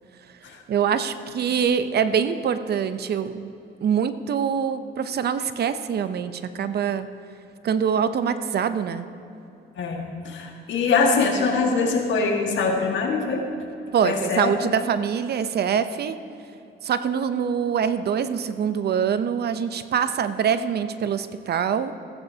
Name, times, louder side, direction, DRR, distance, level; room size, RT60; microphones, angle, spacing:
voice 1, 0.7-3.5 3.8-7.1 7.6-9.1 13.9-16.2 16.8-21.9, right 7 dB, 55° right, 12 dB, 0.6 m, -24 dB
voice 2, 9.8-13.4 14.0-14.5, left 4 dB, 70° left, 1 dB, 1.7 m, -23 dB
14.5 x 14.0 x 2.8 m, 2.7 s
cardioid pair, 90°, 20 cm